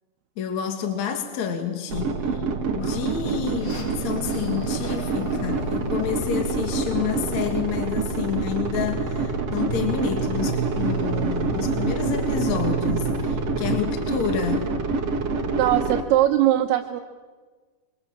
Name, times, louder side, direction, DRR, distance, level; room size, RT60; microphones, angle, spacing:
voice 1, 0.4-2.3 2.7-14.7, left 8 dB, 50° left, 5 dB, 2.9 m, -29 dB
sound 1, 1.9-16.0, right 4 dB, 45° right, 2.4 m, -27 dB
sound 2, 2.8-13.8, right 3 dB, 30° left, 2.9 m, -33 dB
voice 2, 15.6-17.0, right 13 dB, 85° right, 1 dB, 3.1 m, -20 dB
28.0 x 24.5 x 7.4 m, 1.4 s
omnidirectional pair, 4.6 m